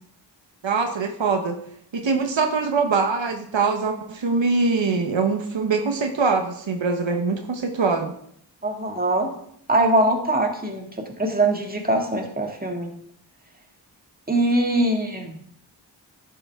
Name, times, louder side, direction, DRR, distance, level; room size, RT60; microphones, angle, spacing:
voice 1, 0.6-1.6 1.9-8.1, right 4 dB, 90° right, 5 dB, 1.1 m, -23 dB
voice 2, 8.6-9.3 9.7-10.9 11.2-12.9 14.3-15.4, right 1 dB, 20° right, 2 dB, 2.0 m, -22 dB
11.0 x 8.7 x 3.6 m, 0.68 s
wide cardioid pair, 50°, 44 cm